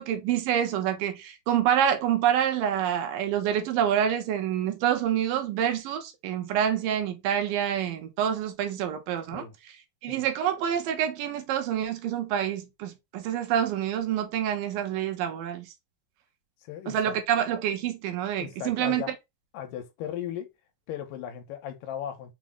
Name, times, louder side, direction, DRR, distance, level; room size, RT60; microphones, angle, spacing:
voice 1, 0.0-9.5 10.0-15.7 16.9-19.0, right 9 dB, 85° right, 2.4 m, -27 dB
voice 2, 16.6-17.2 18.4-19.1 19.5-20.5 20.9-22.3, left 10 dB, 80° left, 2.3 m, -37 dB
6.0 x 2.1 x 3.4 m
omnidirectional pair, 4.0 m